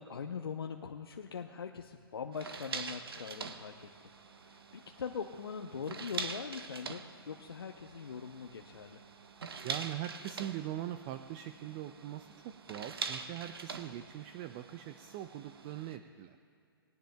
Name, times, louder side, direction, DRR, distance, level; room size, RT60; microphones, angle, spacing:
voice 1, 0.0-3.9 4.4-9.0, left 6 dB, 75° left, 4 dB, 0.7 m, -42 dB
sound 1, 2.3-16.0, right 5 dB, 75° right, 1.0 m, -45 dB
voice 2, 9.6-16.4, right 12 dB, 30° right, 9 dB, 0.4 m, -42 dB
19.5 x 17.5 x 2.3 m, 2.5 s
hypercardioid pair, 135°, 13 cm